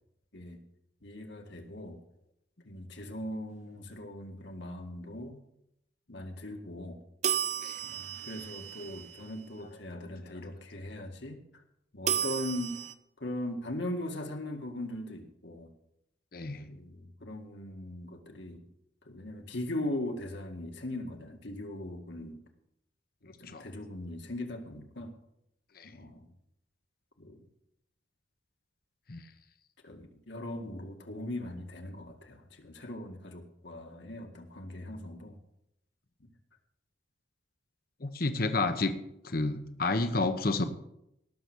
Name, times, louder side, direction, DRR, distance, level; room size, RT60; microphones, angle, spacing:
voice 1, 1.0-2.0 2.7-5.4 6.1-7.0 7.8-11.4 11.9-12.8 13.2-15.7 16.6-18.6 19.1-22.4 23.2-25.1 25.8-26.3 27.2-27.4 29.8-35.4, left 1 dB, 65° left, 4 dB, 2.0 m, -40 dB
sound 1, 7.2-9.5 12.1-12.9, right 9 dB, 35° right, 0.6 m, -33 dB
voice 2, 9.9-10.4 16.3-16.7 23.5-23.6 25.7-25.9 29.1-29.3 38.0-38.9 39.2-40.7, left 3 dB, 50° left, 9 dB, 1.0 m, -31 dB
18.5 x 6.9 x 6.2 m, 0.79 s
head